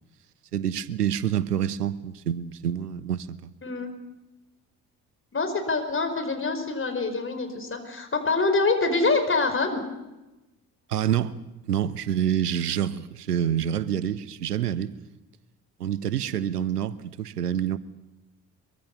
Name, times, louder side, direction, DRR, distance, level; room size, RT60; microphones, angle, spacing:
voice 1, 0.5-3.5 10.9-11.4 11.7-14.9 15.8-17.8, right 10 dB, 80° right, 18 dB, 0.8 m, -27 dB
voice 2, 5.3-9.8, left 3 dB, 25° left, 7 dB, 4.9 m, -25 dB
23.5 x 23.5 x 7.1 m, 1.0 s
figure-of-eight pair, 50°, 46 cm